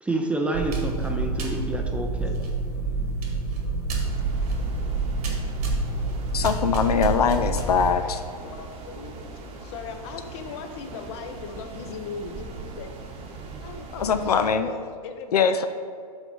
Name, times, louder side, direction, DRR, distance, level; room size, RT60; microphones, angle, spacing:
voice 1, 0.0-2.4, right 2 dB, 5° right, 2 dB, 0.5 m, -28 dB
sound 1, 0.5-7.9, right 3 dB, 70° right, 1.6 m, -27 dB
sound 2, 4.0-14.6, right 4 dB, 30° right, 1.0 m, -41 dB
voice 2, 6.3-8.2 14.0-14.7 15.3-15.7, left 6 dB, 70° left, 9 dB, 0.4 m, -22 dB
voice 3, 7.6-8.1 8.4-12.9 13.6-15.7, left 5 dB, 45° left, 7 dB, 0.7 m, -38 dB
5.5 x 4.0 x 6.0 m, 2.2 s
figure-of-eight pair, 110°, 20 cm